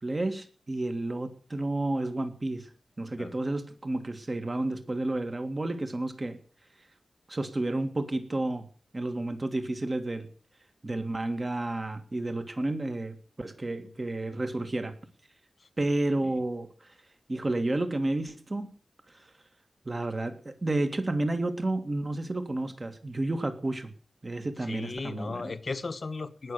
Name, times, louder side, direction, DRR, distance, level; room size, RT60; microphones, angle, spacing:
voice 1, 0.0-2.7 3.0-6.4 7.3-8.7 8.9-10.3 10.8-14.9 15.8-16.7 17.3-18.7 19.1-19.3 19.9-23.9 24.2-25.5, right 2 dB, 30° right, 2.0 m, -31 dB
voice 2, 24.7-26.5, left 3 dB, 45° left, 1.2 m, -36 dB
19.0 x 6.7 x 8.3 m
wide cardioid pair, 115°, 0 cm